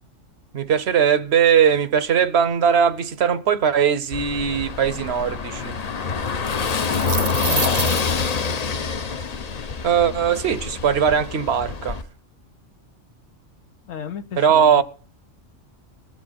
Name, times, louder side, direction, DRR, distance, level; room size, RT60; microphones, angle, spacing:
voice 1, 0.5-5.8 9.8-12.0 14.4-14.8, right 8 dB, 60° right, 0.9 m, -19 dB
Car passing by / Engine, 4.1-12.0, left 5 dB, 40° left, 0.6 m, -26 dB
sound 1, 6.7-8.3, right 6 dB, 40° right, 0.5 m, -27 dB
voice 2, 7.4-8.0 13.9-14.8, left 8 dB, 80° left, 1.3 m, -32 dB
20.5 x 7.6 x 4.2 m
omnidirectional pair, 1.3 m